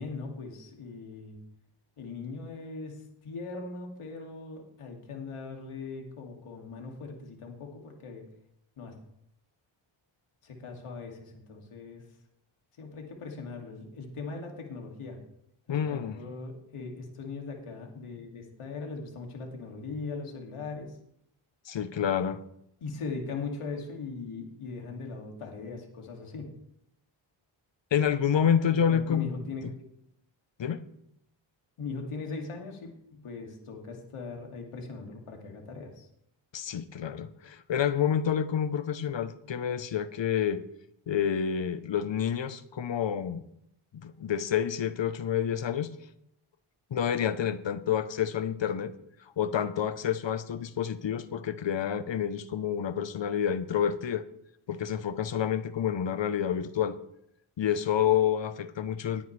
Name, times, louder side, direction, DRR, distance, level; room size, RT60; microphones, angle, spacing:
voice 1, 0.0-1.4 2.0-8.2 8.8-8.9 10.4-12.0 12.8-15.2 15.7-21.0 22.8-26.5 28.9-29.7 31.8-36.1, left 4 dB, 80° left, 1 dB, 2.7 m, -40 dB
voice 2, 15.7-16.1 21.7-22.4 27.9-29.3 30.6-30.9 36.5-40.6 41.1-43.4 43.9-45.9 46.9-48.9 49.4-54.2 54.7-57.0 57.6-59.3, left 8 dB, 60° left, 13 dB, 1.0 m, -28 dB
19.0 x 9.4 x 3.4 m, 0.76 s
cardioid pair, 60°, 50 cm